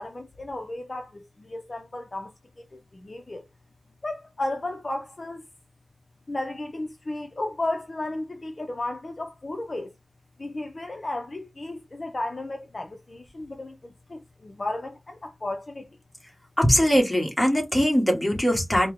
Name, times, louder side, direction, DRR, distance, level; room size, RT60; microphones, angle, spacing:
voice 1, 0.0-3.5 4.0-5.4 6.3-9.9 10.4-15.9, left 2 dB, 45° left, 0.5 m, -34 dB
voice 2, 16.6-18.9, equal, 15° left, 1.4 m, -21 dB
4.4 x 2.1 x 3.4 m
wide cardioid pair, 90°, 0 cm